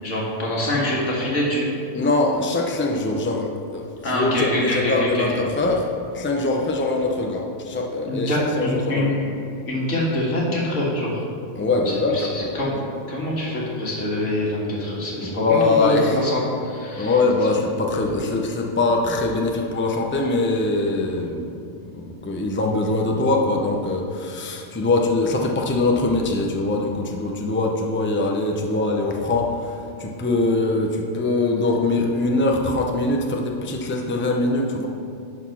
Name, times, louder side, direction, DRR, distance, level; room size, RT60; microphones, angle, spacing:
voice 1, 0.0-1.8 4.0-5.4 8.0-9.3 9.7-11.2 11.9-12.8 13.1-17.5, left 1 dB, 85° left, -4 dB, 2.1 m, -25 dB
voice 2, 1.9-5.9 6.1-9.1 11.6-12.5 15.2-16.1 16.9-21.5 21.9-34.9, left 2 dB, 15° left, 0 dB, 0.6 m, -22 dB
11.0 x 4.2 x 5.8 m, 2.4 s
omnidirectional pair, 1.3 m